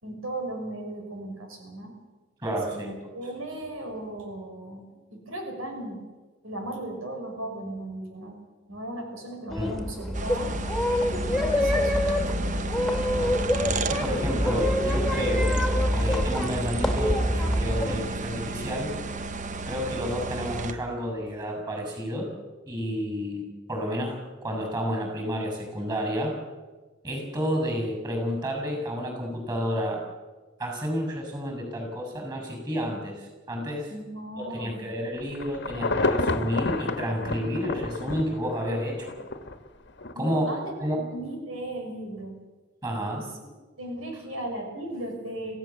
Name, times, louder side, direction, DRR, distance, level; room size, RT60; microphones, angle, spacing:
voice 1, 0.0-1.9 2.6-4.8 5.1-6.0 6.4-8.4 8.7-10.5 11.0-12.4 33.9-34.8 40.1-42.3 43.1-43.3 43.8-45.6, right 1 dB, 90° right, 2 dB, 5.9 m, -36 dB
voice 2, 2.4-3.1 9.5-9.7 13.9-15.6 15.9-18.9 19.6-22.3 22.7-26.3 27.0-30.0 30.6-33.9 34.4-39.1 40.1-40.5 40.8-41.0 42.8-43.2, equal, 20° right, 3 dB, 6.9 m, -30 dB
sound 1, 9.5-18.0, left 1 dB, ahead, 2.5 m, -26 dB
sound 2, 10.1-20.7, right 3 dB, 40° right, 1.0 m, -32 dB
Insect / Thunder / Rain, 35.2-39.5 40.0-40.1, left 2 dB, 55° left, 1.5 m, -29 dB
26.5 x 16.0 x 7.2 m, 1.2 s
head